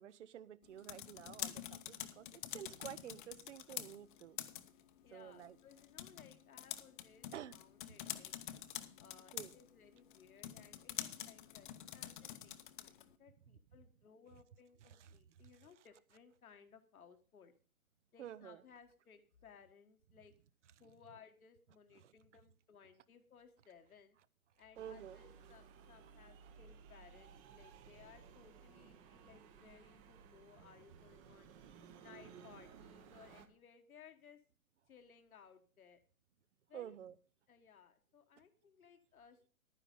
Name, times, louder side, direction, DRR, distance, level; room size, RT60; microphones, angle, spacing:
voice 1, 0.0-4.4 5.1-5.6 7.3-7.6 9.3-9.5 15.0-15.1 18.2-18.6 22.0-22.1 24.8-25.2 36.7-37.1, right 10 dB, 55° right, 18 dB, 0.8 m, -50 dB
sound 1, 0.6-13.1, left 12 dB, 35° left, 0.8 m, -48 dB
voice 2, 5.0-8.3 9.0-17.5 18.1-20.3 20.8-24.2 24.6-31.5 32.0-34.4 34.9-36.0 36.7-37.0 37.5-39.5, left 7 dB, 70° left, 6 dB, 1.5 m, -62 dB
sound 2, 24.7-33.5, right 7 dB, 20° right, 0.9 m, -58 dB
11.0 x 9.9 x 5.3 m, 0.38 s
figure-of-eight pair, 135°, 44 cm